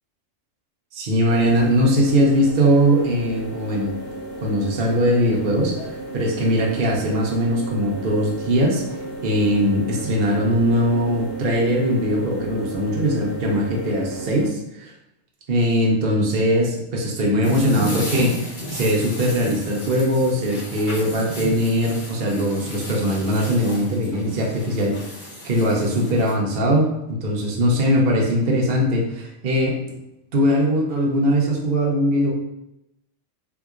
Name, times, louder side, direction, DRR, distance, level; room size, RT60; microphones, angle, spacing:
voice 1, 0.9-3.9 4.4-5.7 6.1-8.8 9.2-14.9 15.5-29.8 30.3-32.3, equal, 55° right, -2 dB, 0.7 m, -20 dB
sound 1, 1.3-14.5, right 1 dB, 85° left, 1.3 m, -34 dB
sound 2, 17.4-26.3, equal, 40° left, 0.9 m, -33 dB
3.5 x 2.9 x 2.4 m, 0.87 s
omnidirectional pair, 1.3 m